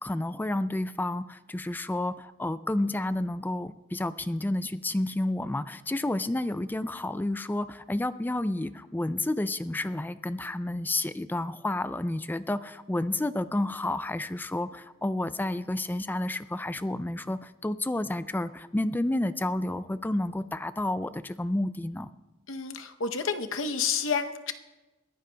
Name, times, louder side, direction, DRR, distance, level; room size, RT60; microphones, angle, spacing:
voice 1, 0.0-22.1, left 1 dB, 10° left, 13 dB, 0.3 m, -30 dB
voice 2, 22.5-24.5, left 5 dB, 85° left, 7 dB, 0.8 m, -30 dB
22.5 x 15.5 x 2.2 m, 1.1 s
head